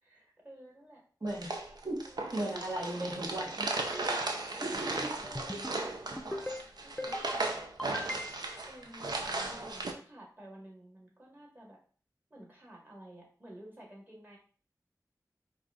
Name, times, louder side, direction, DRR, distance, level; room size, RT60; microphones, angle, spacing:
voice 1, 0.0-1.0 2.0-2.7 3.9-4.4 4.8-5.6 6.1-6.2 6.8-7.5 8.7-11.8 12.3-14.4, right 1 dB, 30° right, -3 dB, 1.9 m, -51 dB
voice 2, 1.2-1.5 1.8-2.0 2.3-3.7 4.6-5.1, right 1 dB, 60° right, -5 dB, 1.4 m, -36 dB
sound 1, 1.3-9.9, right 2 dB, 90° right, 0.6 m, -36 dB
sound 2, 5.3-5.8 6.2-6.6 7.0-7.4 7.8-8.6, left 1 dB, 10° left, 0.6 m, -39 dB
4.5 x 2.6 x 3.8 m, 0.42 s
wide cardioid pair, 40°, 7 cm